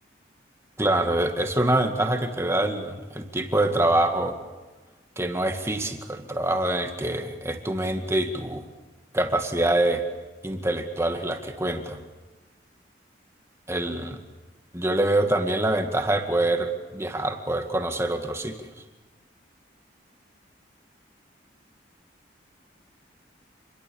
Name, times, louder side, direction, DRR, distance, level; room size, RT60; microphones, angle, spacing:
voice 1, 0.8-4.4 5.2-8.6 9.1-10.1 10.4-12.0 13.7-14.2 14.7-18.7, right 1 dB, 15° right, 5 dB, 2.1 m, -25 dB
28.5 x 22.5 x 7.1 m, 1.3 s
head